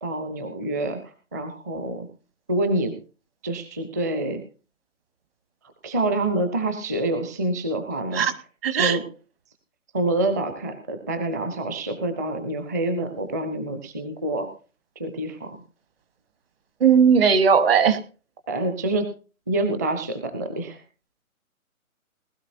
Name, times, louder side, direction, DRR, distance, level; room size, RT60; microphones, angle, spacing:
voice 1, 0.0-2.1 2.5-2.9 3.4-4.4 5.8-8.2 8.7-9.0 9.9-14.5 15.0-15.6 18.5-19.1 19.5-20.8, right 2 dB, 15° right, 7 dB, 0.6 m, -27 dB
voice 2, 8.6-9.0 16.8-18.0, right 7 dB, 45° right, 10 dB, 1.4 m, -17 dB
19.5 x 13.0 x 2.7 m, 0.36 s
figure-of-eight pair, 140°, 43 cm